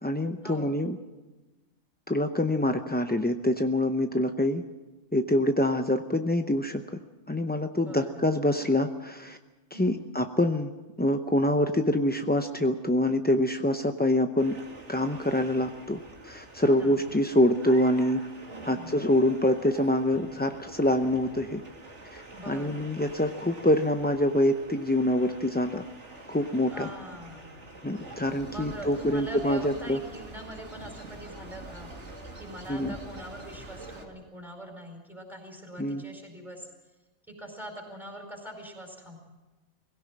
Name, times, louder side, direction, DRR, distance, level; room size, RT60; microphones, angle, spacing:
voice 1, 0.0-1.0 2.1-4.6 5.1-6.8 7.3-9.4 9.7-10.7 11.0-14.5 14.9-18.2 18.6-21.6 22.1-25.8 26.3-26.9 27.8-30.0 32.7-33.0 35.8-36.0, left 1 dB, 15° left, 6 dB, 0.3 m, -25 dB
voice 2, 7.7-8.2 9.7-10.0 16.6-17.0 18.5-18.9 22.3-22.8 26.7-27.6 28.4-31.9 32.4-36.7 37.3-39.2, right 1 dB, ahead, 2 dB, 4.8 m, -43 dB
sound 1, 14.4-34.0, right 2 dB, 50° right, 2.9 m, -46 dB
21.0 x 17.0 x 7.5 m, 1.1 s
omnidirectional pair, 1.5 m